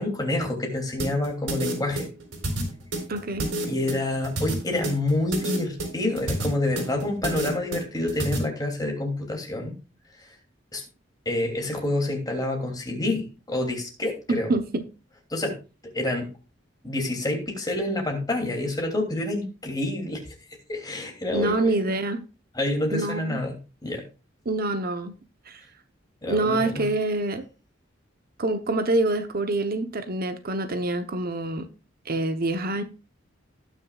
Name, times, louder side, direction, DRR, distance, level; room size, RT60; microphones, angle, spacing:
voice 1, 0.0-2.1 3.7-9.7 10.2-10.3 10.7-10.8 11.2-14.5 15.3-15.6 15.9-16.3 16.8-20.3 20.7-22.0 22.5-24.0 26.2-26.9, left 2 dB, 20° left, 2.9 m, -28 dB
sound 1, 1.0-8.4, right 1 dB, 90° right, 3.7 m, -29 dB
voice 2, 3.1-3.5 14.3-14.8 21.3-22.2 22.9-23.4 24.4-25.2 25.5-25.6 26.3-27.5 28.4-31.7 32.1-32.8, right 2 dB, 50° right, 0.9 m, -26 dB
18.5 x 6.4 x 2.4 m
head